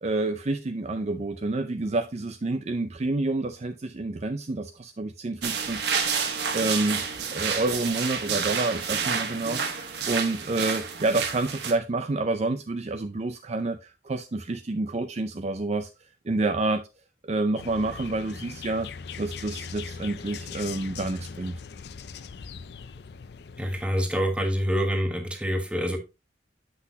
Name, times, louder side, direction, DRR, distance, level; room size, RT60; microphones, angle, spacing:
voice 1, 0.0-6.1 6.5-7.0 7.3-15.9 16.3-16.9 17.2-18.9 19.2-21.5, right 2 dB, 40° right, 0.5 m, -28 dB
sound 1, 5.4-11.7, right 6 dB, 70° right, 1.2 m, -29 dB
sound 2, 17.6-23.9, left 6 dB, 65° left, 0.4 m, -40 dB
voice 2, 23.6-26.0, equal, 5° right, 1.3 m, -26 dB
7.9 x 5.9 x 2.8 m
head